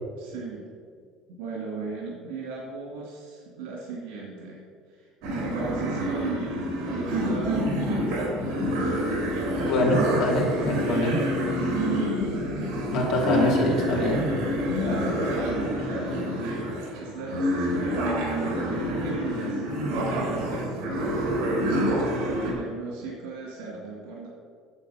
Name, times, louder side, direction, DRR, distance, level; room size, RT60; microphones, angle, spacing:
voice 1, 0.2-0.6 1.4-4.6 4.9-8.5 10.4-12.4 14.7-21.0 22.2-24.3, right 3 dB, 75° right, -3 dB, 2.5 m, -36 dB
sound 1, 5.2-22.5, equal, 60° right, 2.7 m, -27 dB
voice 2, 9.6-11.2 12.9-14.3, left 1 dB, 50° left, -3 dB, 2.7 m, -24 dB
8.9 x 7.3 x 5.8 m, 2.1 s
cardioid pair, 170°, 0 cm